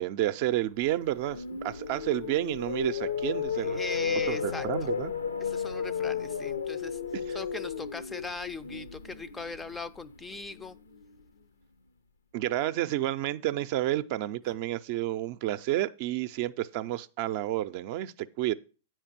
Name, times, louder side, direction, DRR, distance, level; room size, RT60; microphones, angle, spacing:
voice 1, 0.0-3.8 4.3-5.1 7.1-7.4 12.3-18.5, right 14 dB, 50° right, 0.4 m, -30 dB
sound 1, 0.9-11.0, left 6 dB, 80° left, 0.6 m, -34 dB
voice 2, 3.6-4.9 5.4-7.0 7.3-10.8, left 3 dB, 10° left, 0.4 m, -39 dB
9.0 x 4.6 x 5.9 m
figure-of-eight pair, 105°, 0 cm